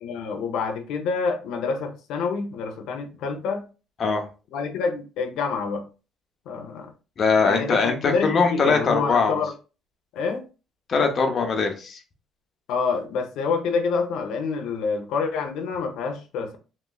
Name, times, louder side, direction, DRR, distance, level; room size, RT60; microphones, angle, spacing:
voice 1, 0.0-3.6 4.5-5.8 6.5-6.9 7.4-9.5 10.1-10.4 12.7-16.6, left 5 dB, 80° left, 0.7 m, -27 dB
voice 2, 7.2-9.4 10.9-12.0, left 4 dB, 45° left, 0.7 m, -21 dB
3.0 x 2.9 x 2.3 m
cardioid pair, 115°, 0 cm